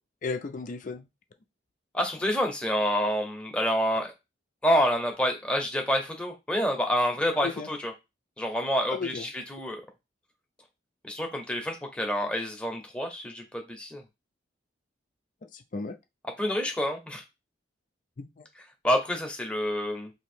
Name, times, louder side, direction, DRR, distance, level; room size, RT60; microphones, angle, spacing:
voice 1, 0.2-1.0 7.4-7.7 8.9-9.2 15.5-16.0 18.2-18.4, left 4 dB, 45° left, 0.4 m, -34 dB
voice 2, 1.9-4.1 4.6-7.9 8.4-9.8 11.0-14.0 16.4-17.2 18.8-20.1, equal, 5° left, 0.8 m, -28 dB
2.8 x 2.7 x 4.3 m
head